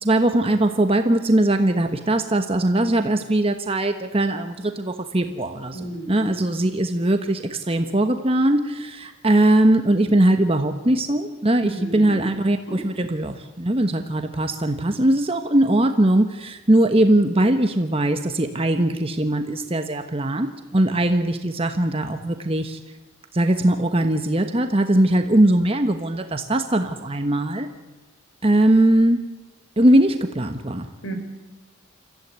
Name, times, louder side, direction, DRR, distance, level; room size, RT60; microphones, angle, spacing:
voice 1, 0.0-22.8 23.3-27.7 28.4-29.3 29.8-30.9, right 1 dB, 30° right, 6 dB, 1.2 m, -20 dB
voice 2, 5.7-6.4 11.6-12.2 12.7-12.8 31.0-31.1, right 1 dB, 80° left, 7 dB, 4.4 m, -33 dB
28.5 x 15.0 x 9.6 m, 1.2 s
head